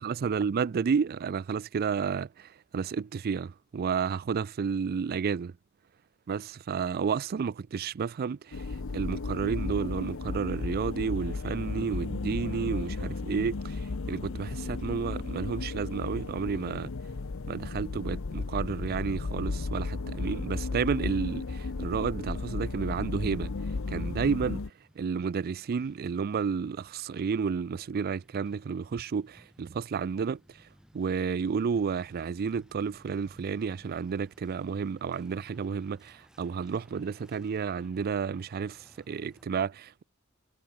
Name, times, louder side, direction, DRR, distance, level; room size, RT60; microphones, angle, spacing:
voice 1, 0.0-5.5 6.3-8.7 8.9-13.8 14.1-16.9 17.5-23.5 23.9-24.6 25.0-30.4 30.9-40.0, right 6 dB, 45° right, 0.4 m, -31 dB
sound 1, 8.5-24.7, left 3 dB, 65° left, 0.7 m, -34 dB
Truck, 23.2-39.4, equal, 5° right, 5.2 m, -60 dB
head